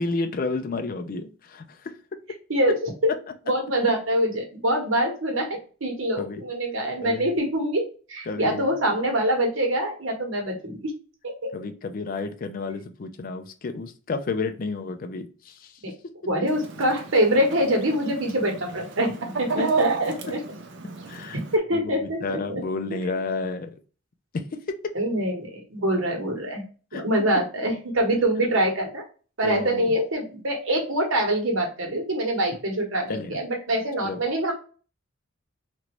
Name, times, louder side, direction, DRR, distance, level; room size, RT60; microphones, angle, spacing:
voice 1, 0.0-1.6 6.2-6.4 7.0-7.3 8.3-8.7 11.5-15.5 19.6-19.7 21.1-21.4 21.7-23.7 24.3-24.8 26.9-27.0 29.4-29.9 33.1-33.4 34.0-34.2, left 3 dB, 45° left, 7 dB, 0.4 m, -31 dB
voice 2, 3.5-7.8 8.1-10.9 11.2-11.5 15.8-15.9 16.2-20.4 21.5-22.6 22.9-23.0 24.9-26.6 26.9-29.0 29.4-34.5, right 1 dB, 75° right, 1 dB, 1.1 m, -25 dB
Chicken rooster, 16.4-21.6, right 4 dB, 60° right, 0.6 m, -31 dB
3.0 x 2.5 x 2.9 m, 0.37 s
head